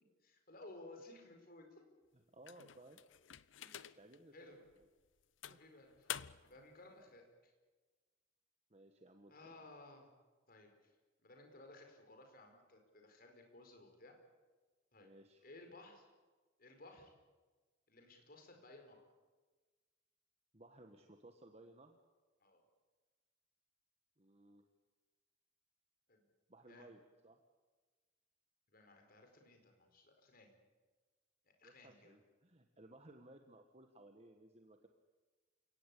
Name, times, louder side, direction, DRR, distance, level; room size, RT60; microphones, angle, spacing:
voice 1, 0.2-1.8 3.6-4.0 4.3-4.6 5.5-7.5 9.3-10.1 10.5-10.9 11.2-14.1 14.9-15.1 15.4-16.1 16.6-17.1 17.9-19.1 22.4-22.6 26.1-26.2 26.7-26.9 28.7-30.6 31.4-32.2, left 2 dB, 50° left, 4 dB, 4.9 m, -58 dB
voice 2, 2.1-3.0 4.0-4.4 4.8-4.9 5.5-5.6 8.7-9.7 15.0-15.4 20.5-22.0 24.2-24.6 26.5-27.4 31.6-34.9, right 1 dB, 35° right, 4 dB, 1.5 m, -60 dB
sound 1, 2.4-4.2 4.7-4.8 5.4-6.6, left 10 dB, 85° left, 0.7 m, -48 dB
29.0 x 18.0 x 8.5 m, 1.3 s
head